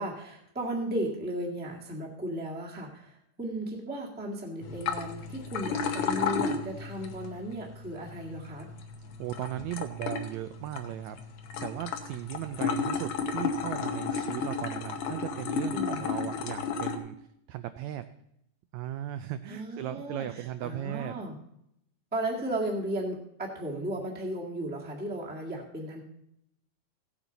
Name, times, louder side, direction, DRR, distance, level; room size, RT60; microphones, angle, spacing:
voice 1, 0.0-8.7 15.7-16.1 19.5-21.4 22.1-26.0, right 1 dB, 5° right, -1 dB, 0.9 m, -35 dB
sound 1, 4.6-17.0, left 5 dB, 70° left, 1.3 m, -33 dB
voice 2, 9.2-11.2 11.6-18.0 18.7-21.3, right 13 dB, 85° right, 11 dB, 1.6 m, -37 dB
16.5 x 8.8 x 4.0 m, 0.76 s
omnidirectional pair, 3.7 m